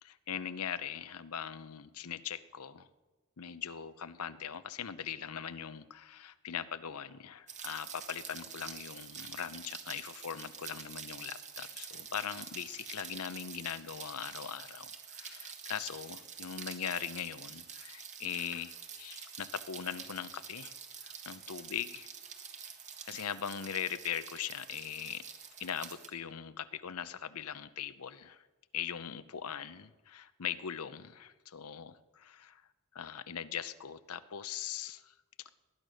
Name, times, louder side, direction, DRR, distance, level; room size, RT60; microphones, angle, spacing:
voice 1, 0.0-2.9 3.4-20.7 21.0-22.1 23.1-25.2 25.6-28.5 28.7-32.6 32.9-35.1, left 8 dB, 80° left, 14 dB, 0.7 m, -40 dB
Rain, 7.5-26.1, right 7 dB, 35° right, 1.5 m, -47 dB
19.0 x 10.5 x 6.4 m, 1.2 s
head